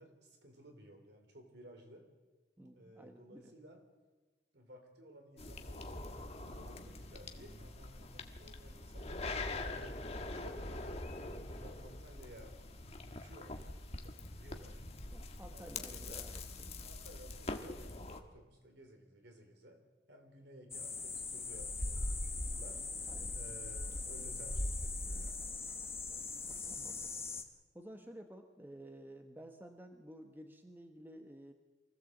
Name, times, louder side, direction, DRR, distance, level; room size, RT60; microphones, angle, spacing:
voice 1, 0.0-2.1 2.7-3.8 4.5-12.6 13.1-14.8 15.5-16.3 16.8-19.8 20.1-25.5, equal, 60° right, 4 dB, 3.6 m, -57 dB
voice 2, 2.6-3.5 15.1-16.9 23.1-23.4 26.1-27.1 27.7-31.5, right 1 dB, 10° right, 5 dB, 1.2 m, -53 dB
sound 1, 5.4-18.2, left 2 dB, 35° left, 1.4 m, -44 dB
sound 2, 20.7-27.4, left 2 dB, 15° left, 1.3 m, -40 dB
24.0 x 16.0 x 7.9 m, 1.3 s
head